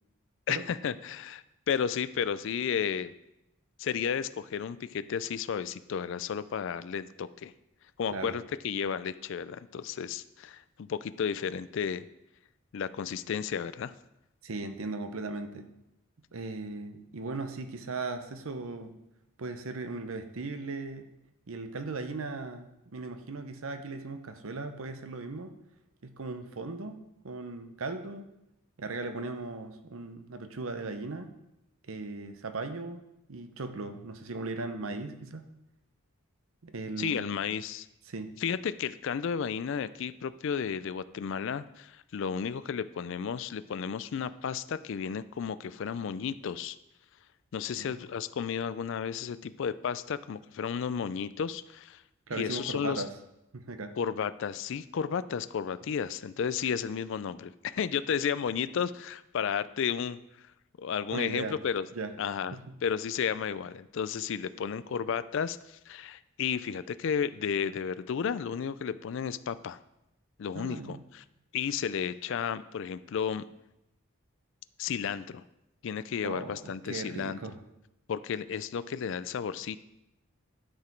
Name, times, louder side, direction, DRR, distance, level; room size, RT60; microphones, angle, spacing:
voice 1, 0.5-3.1 3.8-7.5 8.0-12.0 12.7-13.9 37.0-37.9 38.4-46.8 47.5-52.0 52.3-53.0 54.0-60.5 60.8-61.9 62.2-69.8 70.4-71.2 71.5-73.4 74.8-75.4 75.8-77.4 78.1-79.8, left 7 dB, 55° left, 15 dB, 0.3 m, -33 dB
voice 2, 14.4-15.7 16.3-18.9 19.4-21.1 21.5-25.5 26.0-27.0 27.2-28.3 28.8-31.3 31.9-33.0 33.3-35.4 36.6-37.3 38.1-38.3 47.7-48.0 52.3-53.1 53.5-53.9 61.1-61.6 61.9-62.1 62.5-62.7 70.5-71.0 76.2-77.6, right 3 dB, 70° right, 8 dB, 0.8 m, -38 dB
11.5 x 4.9 x 4.5 m, 0.88 s
head